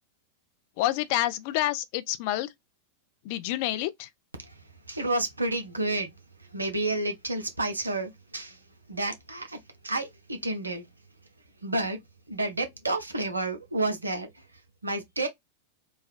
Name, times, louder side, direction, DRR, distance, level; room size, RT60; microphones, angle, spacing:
voice 1, 0.8-2.5 3.2-4.1, left 14 dB, 45° left, 0.3 m, -28 dB
voice 2, 4.4-6.1 6.4-8.6 8.9-10.9 11.6-12.0 12.3-15.3, right 2 dB, 80° right, 0.7 m, -31 dB
3.2 x 2.1 x 2.4 m
figure-of-eight pair, 90°, 0 cm